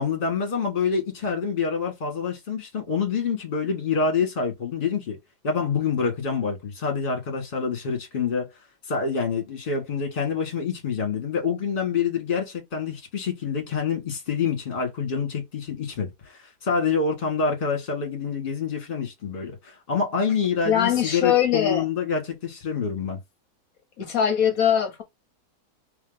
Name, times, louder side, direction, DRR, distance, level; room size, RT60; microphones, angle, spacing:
voice 1, 0.0-5.2 5.4-8.5 8.9-23.2, left 5 dB, 30° left, 1.5 m, -27 dB
voice 2, 20.6-21.9 24.0-25.0, left 9 dB, 60° left, 1.1 m, -22 dB
3.3 x 2.8 x 3.8 m
omnidirectional pair, 2.0 m